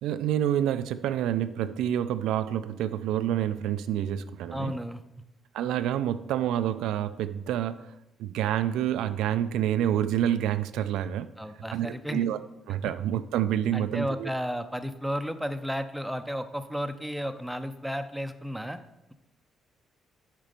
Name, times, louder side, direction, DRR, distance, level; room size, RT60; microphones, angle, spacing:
voice 1, 0.0-4.7 5.5-7.9 8.2-11.3 11.7-12.4 12.7-14.3, right 11 dB, 90° right, 11 dB, 0.3 m, -28 dB
voice 2, 4.5-5.0 11.4-12.3 13.7-18.8, equal, 5° right, 8 dB, 0.6 m, -33 dB
7.3 x 5.1 x 5.2 m, 0.91 s
cardioid pair, 90°, 0 cm